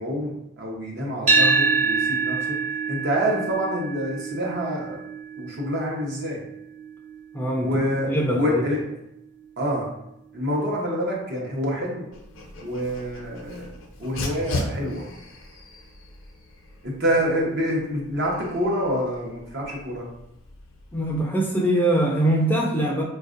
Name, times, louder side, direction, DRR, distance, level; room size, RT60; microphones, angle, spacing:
voice 1, 0.0-2.4 2.9-5.0 5.4-6.4 7.6-8.9 9.6-9.9 10.3-12.1 12.6-15.1 16.8-20.1, equal, 60° right, -3 dB, 0.9 m, -27 dB
sound 1, 1.3-9.5, right 4 dB, 40° right, 0.6 m, -27 dB
voice 2, 7.3-7.7 8.1-8.6 20.9-23.0, right 1 dB, 10° left, -1 dB, 0.4 m, -22 dB
Dog, 12.1-21.2, left 2 dB, 80° left, 0.6 m, -37 dB
4.2 x 2.5 x 2.5 m, 0.81 s
head